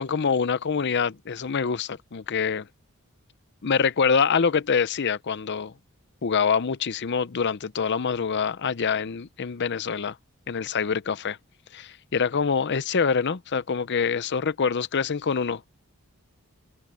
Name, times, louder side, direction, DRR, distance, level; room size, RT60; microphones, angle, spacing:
voice 1, 0.0-2.6 3.6-5.7 6.2-10.2 10.5-11.4 11.7-15.6, left 6 dB, 50° left, 0.6 m, -25 dB
head